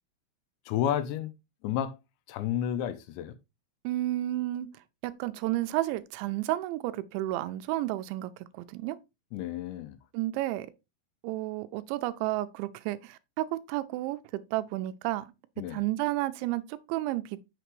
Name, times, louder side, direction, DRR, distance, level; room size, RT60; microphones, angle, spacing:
voice 1, 0.7-1.3 1.6-2.0 2.3-3.3 9.3-10.0 15.6-15.8, left 10 dB, 85° left, 2.9 m, -31 dB
voice 2, 3.8-4.7 5.0-9.0 10.1-10.7 11.2-14.2 14.5-15.3 15.7-17.4, right 16 dB, 85° right, 2.8 m, -31 dB
8.0 x 5.8 x 3.1 m
omnidirectional pair, 5.4 m